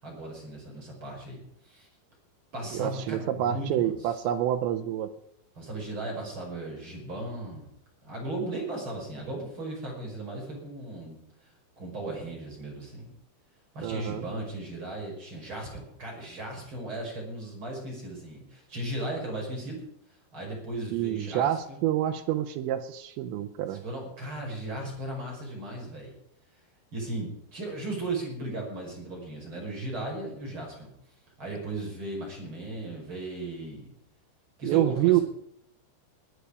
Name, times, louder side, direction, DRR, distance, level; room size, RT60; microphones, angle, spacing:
voice 1, 0.0-1.9 2.5-4.0 5.6-7.7 8.1-11.2 11.8-13.1 13.7-19.8 20.3-21.8 23.7-26.1 26.9-30.9 31.4-33.9 34.6-35.2, right 2 dB, 25° right, -1 dB, 5.8 m, -36 dB
voice 2, 2.7-5.1 13.8-14.2 20.9-23.8 34.6-35.2, right 12 dB, 80° right, 9 dB, 2.6 m, -27 dB
21.5 x 9.7 x 5.0 m, 0.73 s
omnidirectional pair, 5.9 m